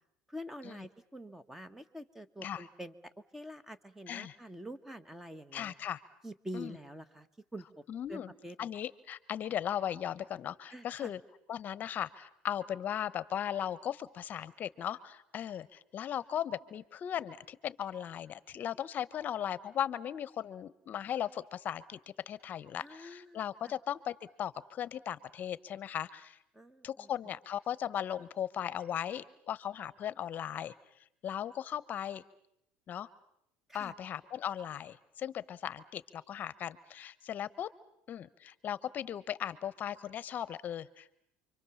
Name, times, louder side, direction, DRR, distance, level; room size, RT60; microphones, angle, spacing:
voice 1, 0.3-2.9 3.3-5.7 6.2-7.3 7.5-7.8 8.1-8.7 10.7-11.1 22.8-23.4 23.6-23.7 26.5-27.1 33.7-33.9, equal, 5° right, 12 dB, 1.4 m, -46 dB
voice 2, 5.5-6.0 6.5-6.7 7.9-8.3 8.6-11.2 11.5-22.0 22.3-26.4 26.8-30.7 31.2-32.2 32.9-33.1 33.7-37.7 38.1-41.2, left 10 dB, 40° left, 17 dB, 1.0 m, -37 dB
29.0 x 24.5 x 7.2 m, 0.74 s
cardioid pair, 130°, 5 cm